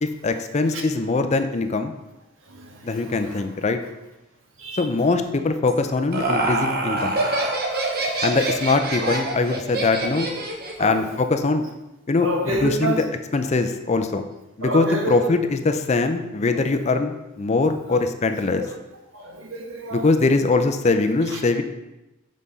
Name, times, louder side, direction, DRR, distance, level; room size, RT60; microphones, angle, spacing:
voice 1, 0.0-1.9 2.8-3.8 4.7-7.2 8.2-10.3 10.8-11.6 12.1-13.1 13.3-14.2 14.6-18.6 19.9-21.6, left 3 dB, 35° left, 7 dB, 0.5 m, -22 dB
Laughter, 5.7-10.8, right 2 dB, 50° right, 1.0 m, -25 dB
voice 2, 7.7-8.0 9.0-9.1 10.8-11.0 12.2-13.0 14.6-15.3 18.6-18.7 19.1-20.1, right 1 dB, 75° right, 2 dB, 1.2 m, -28 dB
6.3 x 5.6 x 4.0 m, 0.97 s
head